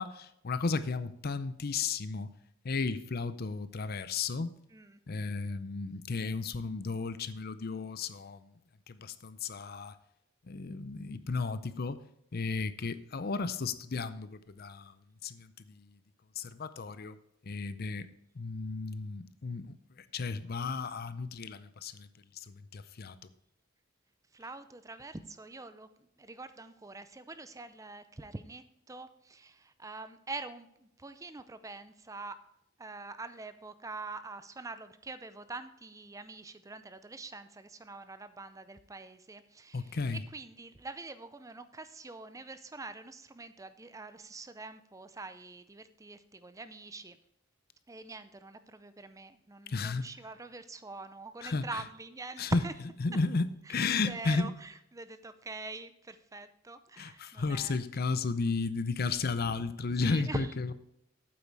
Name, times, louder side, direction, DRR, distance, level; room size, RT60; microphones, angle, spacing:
voice 1, 0.0-2.3 2.6-4.6 5.1-8.5 8.9-10.0 10.5-12.0 12.3-14.9 15.2-15.9 16.4-17.2 17.4-18.1 18.4-22.1 22.3-23.2 39.7-40.2 49.7-50.0 51.4-51.8 52.4-52.6 53.0-54.5 57.0-60.7, left 4 dB, 50° left, 14 dB, 0.6 m, -34 dB
voice 2, 24.3-32.4 32.8-40.0 40.3-47.2 47.9-52.7 53.7-53.8 54.0-57.8 59.5-59.6 60.0-60.5, right 3 dB, 15° right, 12 dB, 0.5 m, -44 dB
8.8 x 8.2 x 4.7 m, 0.78 s
head